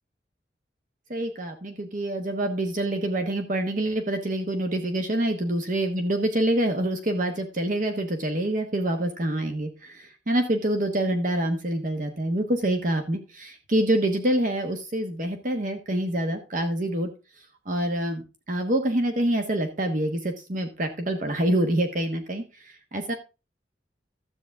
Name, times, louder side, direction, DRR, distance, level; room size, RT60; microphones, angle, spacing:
voice 1, 1.1-17.1 17.7-23.1, right 1 dB, 45° right, 5 dB, 1.2 m, -26 dB
13.0 x 8.3 x 3.6 m, 0.30 s
head